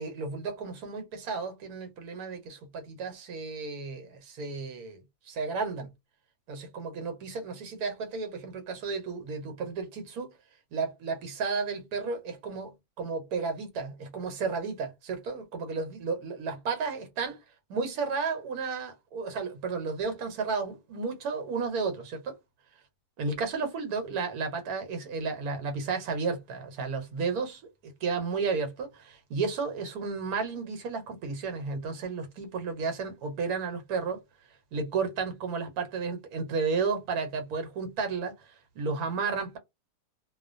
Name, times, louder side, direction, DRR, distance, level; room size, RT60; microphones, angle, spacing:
voice 1, 0.0-5.9 6.5-10.3 10.7-17.4 17.7-22.4 23.2-34.2 34.7-39.6, right 4 dB, 70° right, 1.2 m, -33 dB
2.4 x 2.4 x 2.5 m
omnidirectional pair, 1.7 m